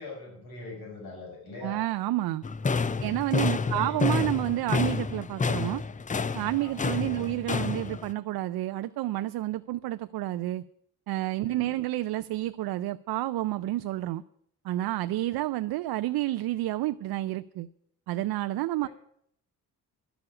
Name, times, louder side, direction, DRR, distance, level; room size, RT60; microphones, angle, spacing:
voice 1, 0.0-1.8 2.9-3.9 6.6-7.3 11.4-11.7 18.8-18.9, left 3 dB, 85° left, 6.7 m, -43 dB
voice 2, 1.6-2.4 3.0-5.8 6.3-10.6 11.1-14.2 14.6-17.7 18.1-18.9, right 16 dB, 90° right, 0.5 m, -30 dB
sound 1, 2.4-8.1, left 4 dB, 20° left, 0.5 m, -29 dB
11.0 x 7.0 x 9.6 m
cardioid pair, 95°, 37 cm